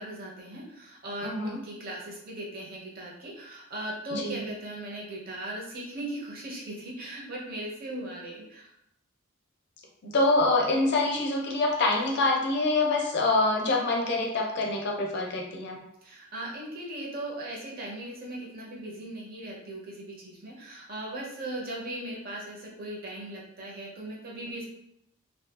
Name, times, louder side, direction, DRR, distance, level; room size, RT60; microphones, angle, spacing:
voice 1, 0.0-8.7 16.0-24.7, right 1 dB, 45° right, -4 dB, 0.7 m, -38 dB
voice 2, 1.2-1.6 4.1-4.5 10.0-15.8, left 2 dB, 50° left, 1 dB, 0.5 m, -25 dB
2.6 x 2.3 x 2.3 m, 0.80 s
head